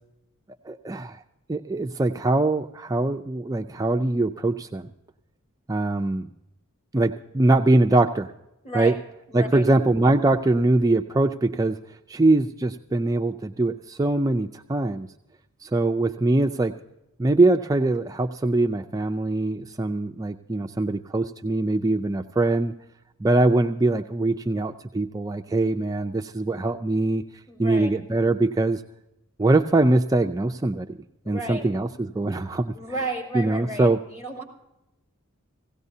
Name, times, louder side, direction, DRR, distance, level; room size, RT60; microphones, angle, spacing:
voice 1, 0.6-1.2 1.5-4.9 5.7-6.3 6.9-8.3 8.7-9.0 9.3-11.8 12.1-15.1 15.6-16.7 17.2-22.7 23.2-27.2 27.6-28.8 29.4-30.9 31.3-32.7 33.3-34.0, right 2 dB, 15° right, 4 dB, 0.4 m, -22 dB
voice 2, 8.6-8.9 9.3-9.6 27.5-27.9 31.2-31.6 32.7-34.4, right 1 dB, 30° left, -1 dB, 4.1 m, -33 dB
17.5 x 16.5 x 2.7 m, 0.90 s
head